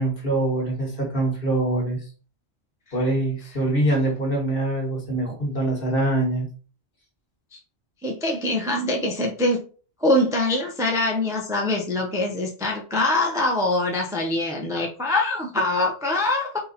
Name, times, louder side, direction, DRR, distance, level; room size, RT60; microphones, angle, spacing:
voice 1, 0.0-2.0 2.9-6.5, right 1 dB, 50° left, 0 dB, 1.6 m, -24 dB
voice 2, 8.0-9.6 10.0-16.6, left 2 dB, 5° right, 0 dB, 0.6 m, -23 dB
4.1 x 2.8 x 4.0 m, 0.38 s
omnidirectional pair, 1.2 m